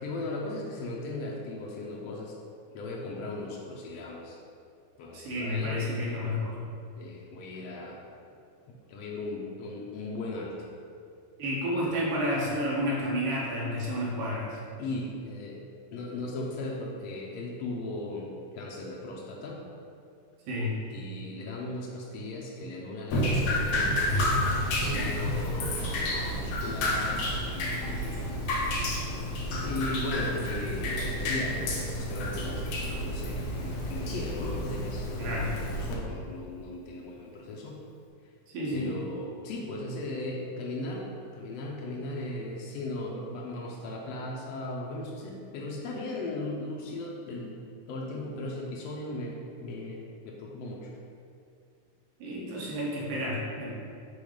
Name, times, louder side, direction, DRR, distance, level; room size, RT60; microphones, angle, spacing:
voice 1, 0.0-2.4 2.7-4.4 5.0-5.8 7.0-8.0 8.9-10.6 14.8-15.6 15.9-19.6 20.9-24.0 24.4-28.4 29.6-37.8 38.7-47.6 47.9-50.9, left 2 dB, 90° left, -2 dB, 1.4 m, -37 dB
voice 2, 5.1-6.6 11.4-14.6 20.5-20.8 24.9-25.3 35.2-35.5 38.5-38.9 52.2-53.7, equal, 85° right, -5 dB, 2.9 m, -30 dB
Drip, 23.1-36.0, left 1 dB, 70° left, 1.4 m, -30 dB
6.9 x 3.5 x 5.0 m, 2.4 s
omnidirectional pair, 3.7 m